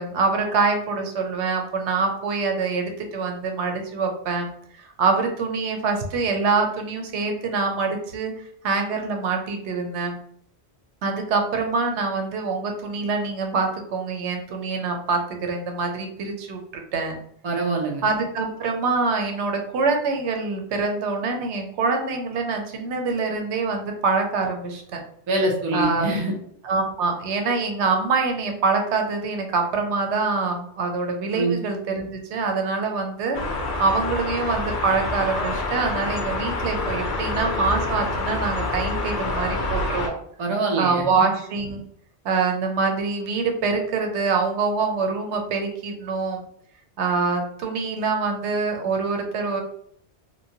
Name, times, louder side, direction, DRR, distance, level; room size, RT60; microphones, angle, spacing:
voice 1, 0.0-4.5 4.8-8.3 8.6-10.2 11.0-17.1 18.0-25.0 25.7-26.2 26.6-33.4 33.8-40.1 40.8-41.8 42.2-46.4 47.0-49.6, right 4 dB, 90° right, 3 dB, 0.9 m, -25 dB
voice 2, 17.4-18.0 25.3-26.3 31.3-31.5 40.4-41.2, right 2 dB, 35° right, 0 dB, 0.5 m, -24 dB
sound 1, 33.3-40.1, left 2 dB, 55° left, 0.6 m, -27 dB
3.0 x 2.1 x 2.7 m, 0.67 s
omnidirectional pair, 1.1 m